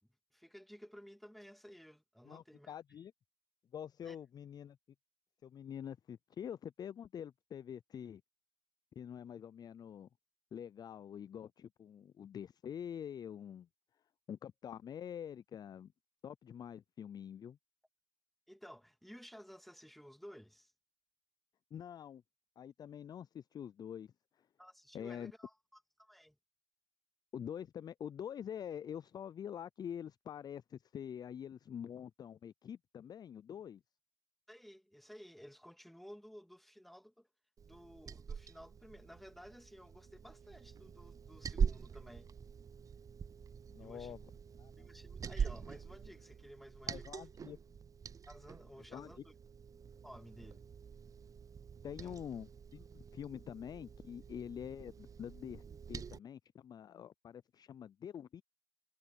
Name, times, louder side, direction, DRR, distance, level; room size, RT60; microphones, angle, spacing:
voice 1, 0.3-2.7 4.0-4.2 18.5-20.7 24.6-25.5 26.0-26.4 34.5-37.3 37.6-42.3 43.8-44.2 44.8-47.3 48.3-49.3 50.0-50.7 52.0-52.2, equal, ahead, 2.6 m, -55 dB
voice 2, 2.2-3.1 3.7-4.8 5.4-8.2 9.0-10.1 10.5-13.7 14.3-15.9 16.2-17.6 21.7-22.2 22.6-24.5 24.9-25.3 27.3-33.8 43.7-44.3 44.6-44.9 46.9-47.6 48.9-49.2 51.8-55.6 55.9-58.4, left 9 dB, 25° left, 0.5 m, -46 dB
Liquid, 37.6-56.2, right 6 dB, 20° right, 0.7 m, -44 dB
hypercardioid pair, 100°, 17 cm